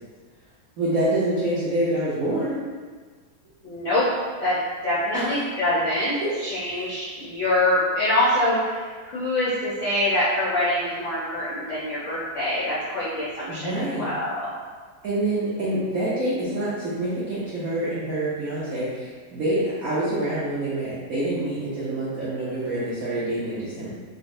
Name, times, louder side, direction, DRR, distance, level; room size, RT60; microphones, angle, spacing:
voice 1, 0.8-2.6 5.1-5.2 6.2-6.3 6.7-6.9 13.5-14.1 15.0-23.9, right 1 dB, 80° right, -9 dB, 0.7 m, -26 dB
voice 2, 3.6-4.1 4.4-14.5, left 1 dB, 75° left, -10 dB, 0.6 m, -25 dB
3.8 x 2.1 x 2.6 m, 1.5 s
omnidirectional pair, 2.3 m